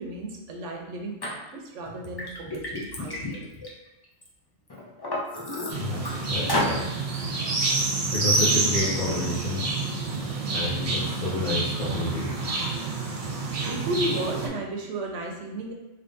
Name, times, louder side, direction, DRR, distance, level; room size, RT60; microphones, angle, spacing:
voice 1, 0.0-3.5 13.7-15.7, right 1 dB, 70° right, 1 dB, 1.0 m, -34 dB
Liquid, 1.2-1.3 1.9-4.3 4.7-6.1 6.5-6.8, left 1 dB, 35° left, 0.3 m, -30 dB
sound 1, 5.7-14.5, right 3 dB, 50° right, 0.4 m, -28 dB
voice 2, 5.8-6.8 8.1-9.6 10.5-12.3, left 3 dB, 75° left, -8 dB, 1.3 m, -30 dB
3.5 x 3.2 x 2.6 m, 1.0 s
omnidirectional pair, 1.4 m